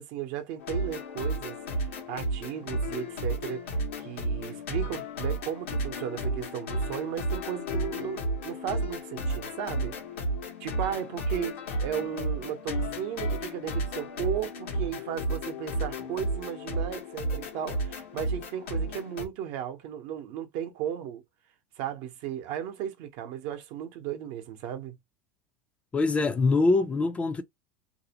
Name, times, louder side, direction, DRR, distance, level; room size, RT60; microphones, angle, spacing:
voice 1, 0.0-10.0 10.6-21.2 21.8-25.0, right 10 dB, 60° right, 0.7 m, -35 dB
sound 1, 0.6-19.3, right 1 dB, 85° left, 1.0 m, -32 dB
voice 2, 25.9-27.4, left 3 dB, 20° left, 0.4 m, -23 dB
2.6 x 2.0 x 2.8 m
supercardioid pair, 115°, 7 cm